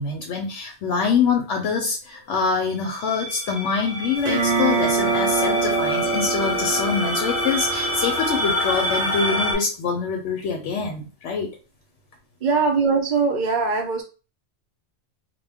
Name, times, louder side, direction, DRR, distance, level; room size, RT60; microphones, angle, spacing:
voice 1, 0.0-11.5, left 5 dB, 75° left, 2 dB, 0.9 m, -25 dB
sound 1, 2.9-9.5, left 1 dB, 20° left, 0.9 m, -27 dB
sound 2, 4.2-9.2, right 5 dB, 75° right, 0.9 m, -25 dB
voice 2, 12.4-14.0, right 4 dB, 45° right, 1 dB, 0.7 m, -21 dB
2.2 x 2.2 x 3.4 m, 0.33 s
omnidirectional pair, 1.3 m